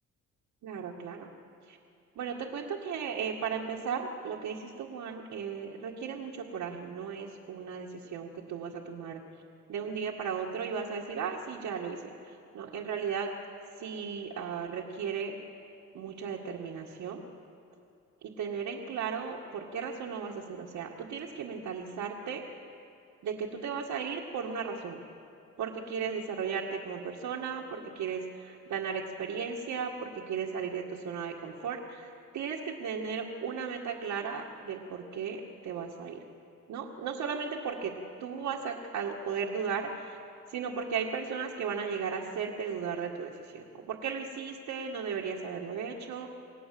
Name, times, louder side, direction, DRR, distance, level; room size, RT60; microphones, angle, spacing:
voice 1, 0.6-1.3 1.7-1.8 2.2-9.2 9.7-12.0 12.2-13.3 13.8-15.3 15.9-17.2 18.2-22.4 23.2-25.0 25.6-36.2 36.7-37.9 38.2-40.2 40.5-46.3, right 6 dB, 80° right, -2 dB, 2.1 m, -36 dB
29.0 x 18.0 x 7.8 m, 2.6 s
cardioid pair, 90°, 30 cm